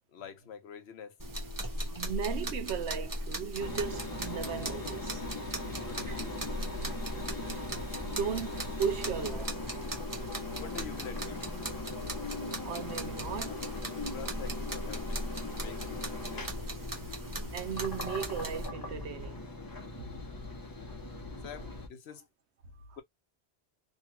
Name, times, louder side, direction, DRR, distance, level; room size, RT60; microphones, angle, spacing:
voice 1, 0.1-1.2 5.7-6.4 10.6-11.6 14.1-16.5 21.4-22.3 22.9-23.0, left 7 dB, 75° left, 1.0 m, -46 dB
sound 1, 1.2-18.7, right 1 dB, 25° right, 0.6 m, -39 dB
voice 2, 2.0-5.2 7.4-7.6 8.1-9.5 12.6-13.6 17.5-19.7 20.0-20.2 22.9-23.0, right 7 dB, 85° right, 1.0 m, -36 dB
Engine, 3.6-21.9, left 2 dB, 25° left, 0.6 m, -40 dB
2.9 x 2.3 x 3.0 m
omnidirectional pair, 1.1 m